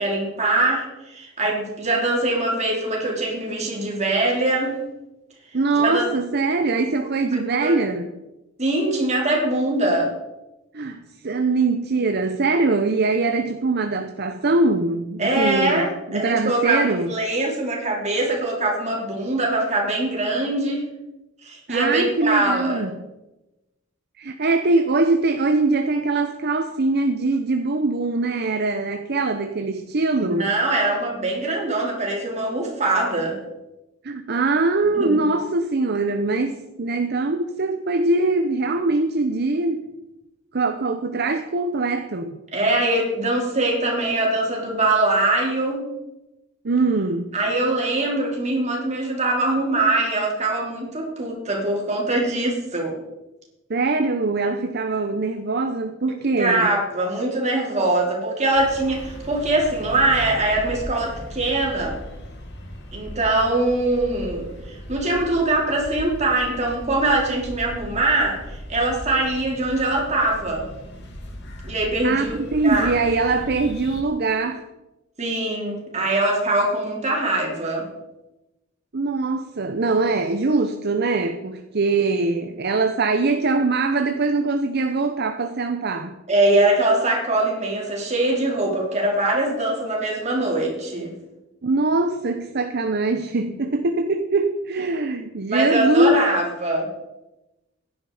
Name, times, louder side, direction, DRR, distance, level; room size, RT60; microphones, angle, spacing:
voice 1, 0.0-4.8 5.7-6.0 7.6-7.7 8.6-10.1 15.2-20.9 21.4-22.9 30.2-33.4 34.9-35.3 42.5-45.9 47.3-53.0 56.4-62.0 62.9-70.7 71.6-72.4 72.6-72.9 75.2-77.9 86.3-91.1 95.5-96.9, right 2 dB, 35° right, -2 dB, 3.9 m, -22 dB
voice 2, 5.5-8.1 10.7-17.1 21.7-23.1 24.2-30.5 34.0-39.9 40.5-42.4 46.6-47.3 53.7-56.7 72.0-74.6 78.9-86.2 91.6-96.2, right 3 dB, 50° right, 7 dB, 0.8 m, -22 dB
sound 1, 58.5-74.0, equal, 60° left, 2.3 m, -38 dB
16.0 x 10.5 x 5.0 m, 1.0 s
head